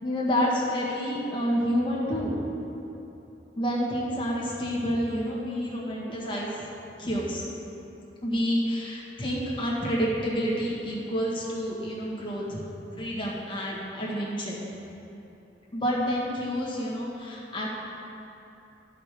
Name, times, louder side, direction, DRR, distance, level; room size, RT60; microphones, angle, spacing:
voice 1, 0.0-2.4 3.6-6.5 7.0-7.4 8.2-12.6 12.9-14.6 15.7-17.7, equal, 30° left, -5 dB, 1.7 m, -28 dB
13.5 x 5.0 x 4.6 m, 3.0 s
head